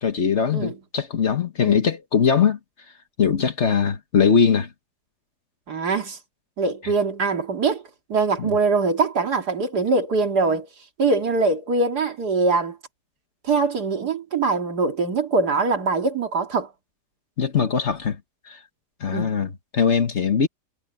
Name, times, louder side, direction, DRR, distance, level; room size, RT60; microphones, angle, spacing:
voice 1, 0.0-2.6 3.2-4.7 8.4-8.5 17.4-18.2 18.5-18.6 19.0-20.5, left 6 dB, 45° left, 1.4 m, -21 dB
voice 2, 5.7-6.2 6.6-7.8 8.1-10.7 11.0-12.8 13.4-16.7 19.1-19.4, right 4 dB, 75° right, 2.8 m, -22 dB
omnidirectional pair, 1.7 m